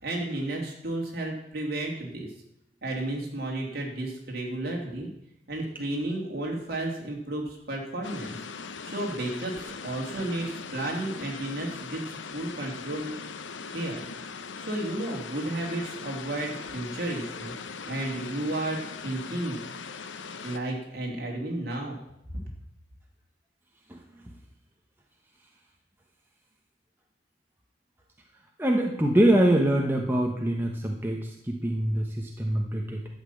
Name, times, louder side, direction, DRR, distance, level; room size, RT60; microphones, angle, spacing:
voice 1, 0.0-2.3 2.8-5.1 5.5-8.4 8.8-13.1 13.7-14.0 14.6-19.6 20.4-22.0, right 1 dB, 55° right, -1 dB, 3.1 m, -32 dB
sound 1, 8.0-20.6, left 5 dB, 80° left, 0.8 m, -40 dB
voice 2, 28.6-33.0, right 1 dB, 10° right, 0 dB, 1.1 m, -24 dB
12.0 x 5.9 x 8.6 m, 0.78 s
head